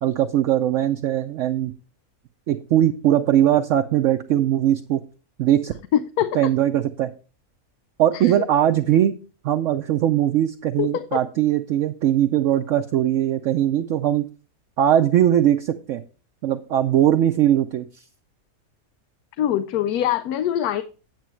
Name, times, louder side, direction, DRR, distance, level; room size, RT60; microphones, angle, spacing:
voice 1, 0.0-1.7 2.5-5.0 5.4-5.7 6.3-7.1 8.0-9.2 9.4-14.3 14.8-16.0 16.4-17.9, right 11 dB, 65° right, 0.8 m, -20 dB
voice 2, 5.9-6.4 8.1-8.3 10.8-11.1 19.4-20.8, left 11 dB, 85° left, 1.1 m, -23 dB
9.1 x 8.3 x 3.1 m
omnidirectional pair, 1.6 m